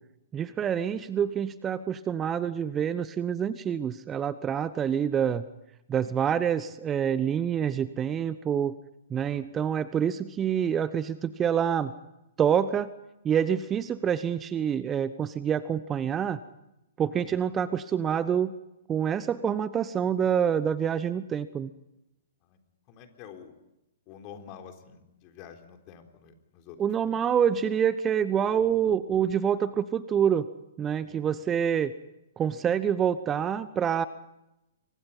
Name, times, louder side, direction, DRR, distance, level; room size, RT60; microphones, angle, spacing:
voice 1, 0.3-5.4 5.9-8.7 9.1-11.9 12.4-12.9 13.2-16.4 17.0-18.5 18.9-21.7 26.8-30.5 30.8-31.9 32.4-34.0, right 8 dB, 20° right, 15 dB, 0.9 m, -27 dB
voice 2, 22.9-23.5 24.1-27.2 31.0-31.4, left 8 dB, 35° left, 5 dB, 3.8 m, -48 dB
28.0 x 24.5 x 5.6 m, 0.90 s
figure-of-eight pair, 115°, 0 cm